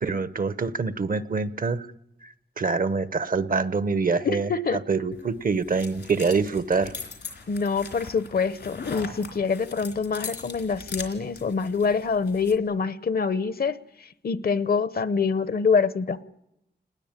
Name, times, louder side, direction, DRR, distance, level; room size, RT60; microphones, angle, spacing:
voice 1, 0.0-1.9 2.2-6.9, right 4 dB, 55° right, 14 dB, 0.9 m, -25 dB
voice 2, 4.2-4.8 7.5-13.8 14.2-16.2, left 5 dB, 65° left, 15 dB, 0.9 m, -25 dB
sound 1, 5.1-12.6, left 5 dB, 90° left, 3.5 m, -40 dB
27.5 x 20.0 x 8.9 m, 0.88 s
wide cardioid pair, 110°, 17 cm